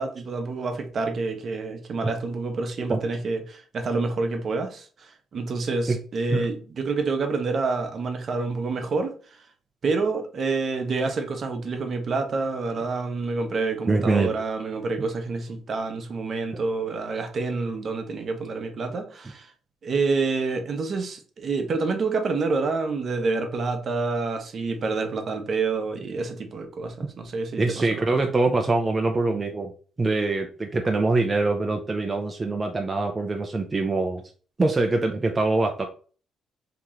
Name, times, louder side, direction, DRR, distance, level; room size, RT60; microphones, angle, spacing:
voice 1, 0.0-9.4 9.8-19.5 19.8-28.0, right 3 dB, 50° right, 0.8 m, -28 dB
voice 2, 13.9-14.3 16.5-16.6 27.6-29.7 30.0-34.2 34.6-35.9, right 3 dB, 25° right, 0.5 m, -24 dB
3.0 x 2.9 x 3.6 m
cardioid pair, 90°, 0 cm